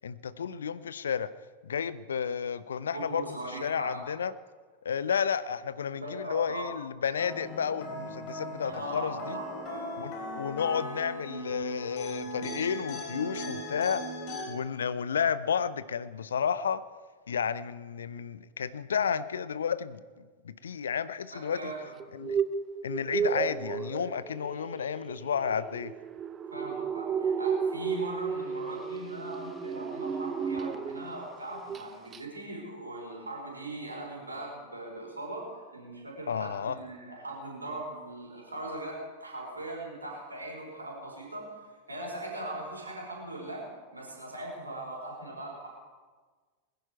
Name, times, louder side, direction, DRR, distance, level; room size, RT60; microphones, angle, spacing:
voice 1, 0.0-1.3 1.6-3.3 3.6-4.3 4.8-9.4 10.0-14.0 14.5-16.8 17.3-20.0 20.4-21.7 22.1-22.4 22.8-25.9 36.3-36.8, left 7 dB, 70° left, 16 dB, 0.6 m, -31 dB
voice 2, 2.9-4.0 6.0-6.6 8.6-9.9 20.6-20.7 21.3-21.9 23.2-23.3 26.5-41.5 41.9-45.7, right 1 dB, 80° right, -1 dB, 4.2 m, -40 dB
sound 1, 7.2-14.5, equal, 40° left, 3.3 m, -38 dB
sound 2, 22.0-31.2 31.5-31.9 32.1-32.2, right 6 dB, 25° right, 0.6 m, -33 dB
20.5 x 10.5 x 4.6 m, 1.4 s
figure-of-eight pair, 90°, 0 cm